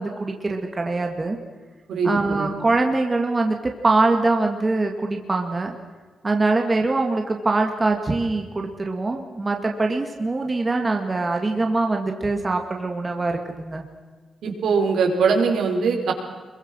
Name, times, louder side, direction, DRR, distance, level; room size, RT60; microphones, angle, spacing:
voice 1, 0.0-1.4 2.0-5.8 6.2-13.8, right 3 dB, 20° right, 3 dB, 2.0 m, -23 dB
voice 2, 1.9-2.5 14.4-16.1, right 5 dB, 80° right, 1 dB, 5.1 m, -21 dB
27.0 x 22.5 x 6.4 m, 1.4 s
wide cardioid pair, 155°, 0 cm